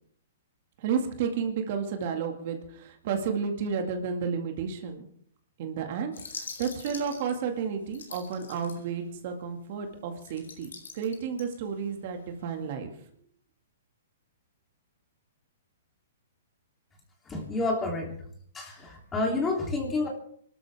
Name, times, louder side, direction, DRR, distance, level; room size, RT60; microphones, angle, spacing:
voice 1, 0.8-5.1 5.6-10.7 10.9-12.9, right 6 dB, 50° right, 4 dB, 2.1 m, -32 dB
sound 1, 6.1-9.1 9.5-9.6 10.0-12.6, left 5 dB, 90° left, 4.5 m, -44 dB
voice 2, 17.3-18.1 18.5-20.1, left 2 dB, 15° left, 0 dB, 3.3 m, -29 dB
24.5 x 12.5 x 3.6 m, 0.62 s
hypercardioid pair, 145°, 0 cm